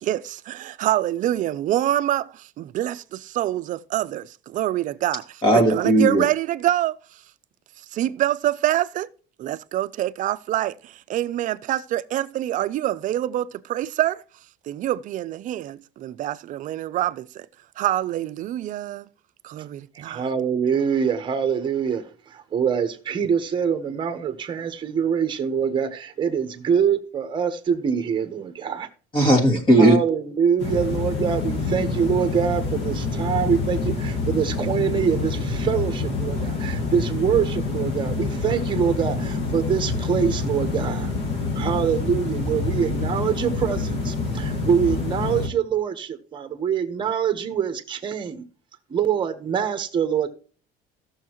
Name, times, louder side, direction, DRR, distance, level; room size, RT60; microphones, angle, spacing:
voice 1, 0.0-7.0 7.9-9.1 9.4-14.2 14.7-17.5 17.8-19.1 19.4-20.3, right 13 dB, 45° right, 0.5 m, -26 dB
voice 2, 5.4-6.2 29.1-30.0, right 1 dB, 25° left, 2.3 m, -16 dB
voice 3, 20.1-28.9 29.8-41.1 41.6-48.5 48.9-50.3, right 7 dB, 25° right, 1.1 m, -24 dB
sound 1, 30.6-45.5, left 3 dB, 70° left, 1.8 m, -27 dB
16.5 x 6.4 x 3.0 m
cardioid pair, 165°, 19 cm